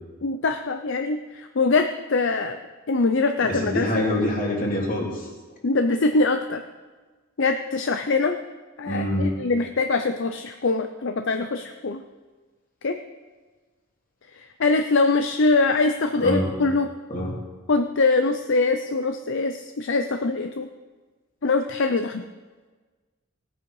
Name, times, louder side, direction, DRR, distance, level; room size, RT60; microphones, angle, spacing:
voice 1, 0.2-2.6 2.9-3.9 5.6-6.6 7.4-8.4 8.8-12.0 12.8-13.0 14.3-16.9 17.7-20.7 21.4-22.2, left 3 dB, 60° left, 7 dB, 0.6 m, -23 dB
voice 2, 3.4-5.3 8.9-9.3 16.2-16.5 17.1-17.3, left 1 dB, 40° left, -1 dB, 2.9 m, -25 dB
18.0 x 9.1 x 4.8 m, 1.3 s
head